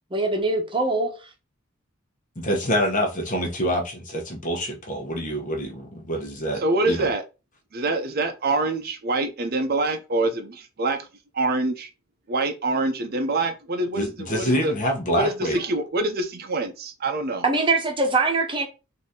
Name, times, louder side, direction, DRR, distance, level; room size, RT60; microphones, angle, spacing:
voice 1, 0.1-1.2 17.4-18.7, right 3 dB, 25° right, 1.0 m, -22 dB
voice 2, 2.4-7.1 14.0-15.6, equal, 40° left, 1.1 m, -26 dB
voice 3, 6.6-7.2 7.7-11.0 11.3-11.9 12.3-14.7 15.2-17.4, right 2 dB, 50° right, 0.7 m, -25 dB
4.1 x 2.8 x 3.7 m
head